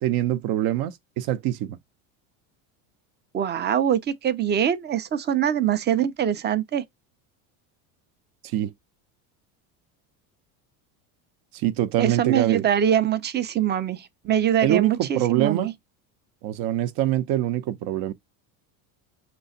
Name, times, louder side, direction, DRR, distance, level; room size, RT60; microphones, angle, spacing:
voice 1, 0.0-1.8 8.5-8.7 11.5-12.7 14.6-15.7 16.4-18.1, right 13 dB, 55° right, 0.8 m, -24 dB
voice 2, 3.3-6.8 12.0-15.7, right 9 dB, 25° right, 0.6 m, -23 dB
5.6 x 3.1 x 2.7 m
supercardioid pair, 120°, 43 cm